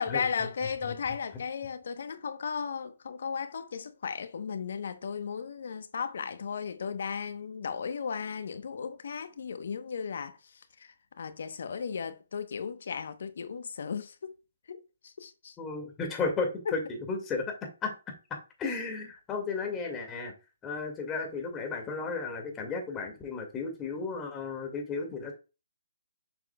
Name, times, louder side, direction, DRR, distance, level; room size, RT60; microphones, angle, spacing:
voice 1, 0.0-14.4 14.7-15.6, left 6 dB, 65° left, 0.9 m, -35 dB
voice 2, 15.6-17.9 18.6-20.3 20.6-25.3, left 4 dB, 15° left, 2.0 m, -34 dB
7.0 x 5.8 x 2.3 m
hypercardioid pair, 145°, 0 cm